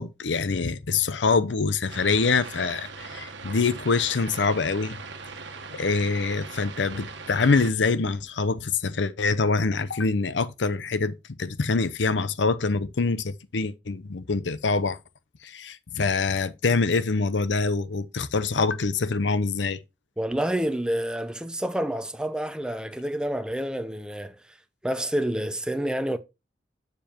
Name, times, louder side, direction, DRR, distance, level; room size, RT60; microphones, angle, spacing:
voice 1, 0.0-5.0 5.7-15.0 15.4-19.8, left 4 dB, 80° left, 0.7 m, -25 dB
sound 1, 1.9-7.7, right 4 dB, 80° right, 1.2 m, -40 dB
voice 2, 20.2-24.4 24.8-26.2, right 1 dB, 5° right, 0.5 m, -28 dB
7.1 x 6.9 x 2.9 m
head